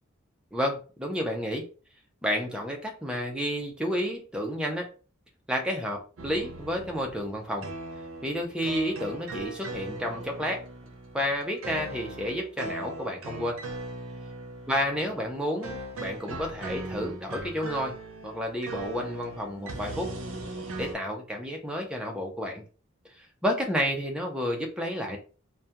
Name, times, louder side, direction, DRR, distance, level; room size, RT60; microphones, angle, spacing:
voice 1, 0.5-1.7 2.2-4.9 5.5-7.7 8.2-10.6 11.1-13.6 14.7-18.0 18.2-20.1 20.8-22.6 23.2-25.2, equal, 5° right, 1 dB, 0.4 m, -31 dB
sound 1, 6.2-20.9, right 2 dB, 75° right, 0.6 m, -39 dB
2.3 x 2.2 x 2.8 m, 0.37 s
head